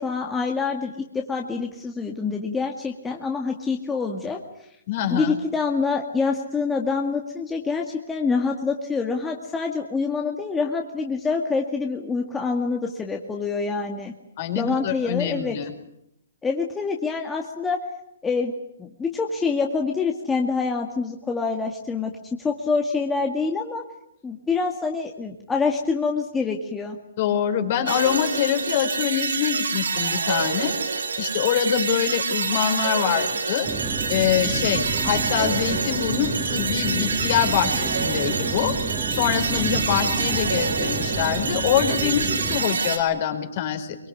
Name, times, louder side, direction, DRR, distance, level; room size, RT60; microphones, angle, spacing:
voice 1, 0.0-4.4 5.1-14.1 14.6-15.6 16.4-17.8 18.2-18.5 18.8-23.8 24.2-27.0 39.6-39.7, left 4 dB, 10° left, 1 dB, 2.1 m, -26 dB
voice 2, 4.9-5.3 14.4-15.7 27.2-30.7 31.2-33.7 34.1-38.7 39.1-44.0, left 9 dB, 45° left, 6 dB, 4.8 m, -24 dB
sound 1, 27.9-43.0, right 5 dB, 80° right, 5.7 m, -27 dB
sound 2, 33.6-42.6, right 4 dB, 20° right, 3.2 m, -30 dB
24.0 x 23.0 x 9.8 m, 0.80 s
hypercardioid pair, 150°, 0 cm